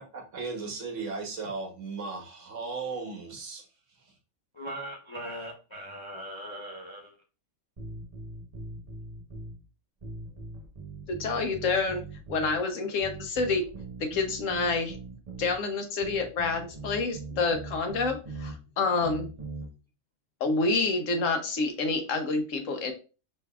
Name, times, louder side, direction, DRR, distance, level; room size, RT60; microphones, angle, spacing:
voice 1, 0.0-3.6 4.0-4.1, right 4 dB, 65° right, 1.4 m, -36 dB
voice 2, 4.5-7.1, right 1 dB, 30° left, 0.5 m, -39 dB
sound 1, 7.8-9.6 10.0-12.6 13.0-15.6 16.0-18.5 19.0-19.7, right 3 dB, 30° right, 1.0 m, -41 dB
voice 3, 11.1-12.0 12.3-13.6 14.0-15.0 15.4-19.3 20.4-22.9, left 3 dB, 70° left, 1.1 m, -28 dB
5.1 x 3.5 x 2.3 m
omnidirectional pair, 1.4 m